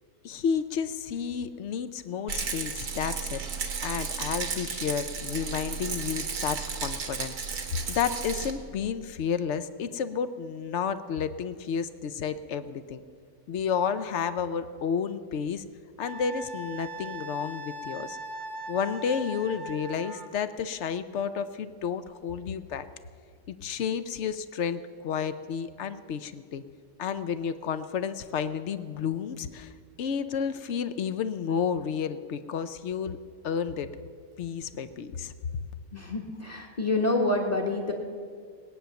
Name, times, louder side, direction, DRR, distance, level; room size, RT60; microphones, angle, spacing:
voice 1, 0.2-3.4 3.8-7.3 7.9-13.0 13.5-15.6 16.0-18.2 18.7-22.9 23.5-26.6 27.0-29.7 30.0-33.2 33.4-33.9 34.4-35.3, left 7 dB, 60° left, 12 dB, 0.8 m, -31 dB
Rattle, 2.3-8.5, right 5 dB, 80° right, 1.8 m, -33 dB
Wind instrument woodwind instrument, 16.0-20.3, right 1 dB, 55° right, 1.0 m, -39 dB
voice 2, 35.9-37.9, left 2 dB, 30° left, 0 dB, 1.3 m, -27 dB
20.5 x 9.0 x 7.0 m, 2.1 s
omnidirectional pair, 1.6 m